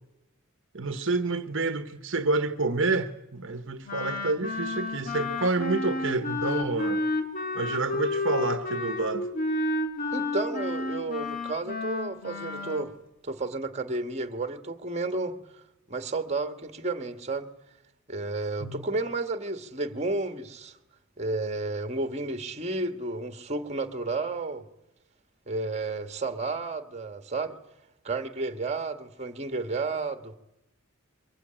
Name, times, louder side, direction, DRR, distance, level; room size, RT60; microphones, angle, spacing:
voice 1, 0.7-7.0 7.5-9.3 18.6-18.9, right 3 dB, 65° right, 1.1 m, -28 dB
Wind instrument woodwind instrument, 3.8-12.9, left 2 dB, 45° left, 2.6 m, -31 dB
voice 2, 10.1-12.9 13.2-15.4 15.9-17.5 18.1-20.7 21.2-24.6 25.5-27.6 28.0-30.4, right 3 dB, 35° right, 1.7 m, -32 dB
23.5 x 22.0 x 8.9 m
head